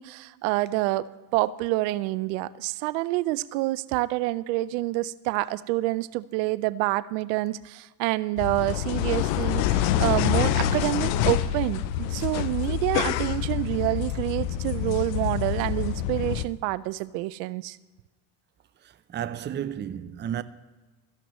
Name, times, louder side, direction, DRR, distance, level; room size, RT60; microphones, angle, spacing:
voice 1, 0.0-17.8, right 18 dB, 80° right, 0.6 m, -27 dB
sound 1, 8.4-16.5, left 10 dB, 85° left, 0.7 m, -26 dB
voice 2, 18.8-20.4, right 10 dB, 25° right, 0.5 m, -33 dB
16.5 x 13.5 x 3.0 m
supercardioid pair, 85°, 49 cm